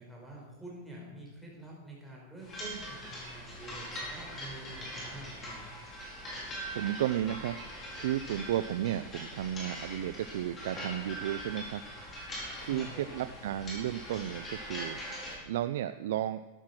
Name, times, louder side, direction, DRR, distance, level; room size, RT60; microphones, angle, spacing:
voice 1, 0.0-5.6 12.6-13.2, right 2 dB, ahead, -5 dB, 5.0 m, -47 dB
sound 1, 2.4-15.3, equal, 20° left, 4.5 m, -42 dB
voice 2, 6.7-7.6 7.9-11.8 12.6-16.4, right 11 dB, 75° right, 11 dB, 0.5 m, -33 dB
13.5 x 11.5 x 6.0 m, 1.2 s
supercardioid pair, 155°, 0 cm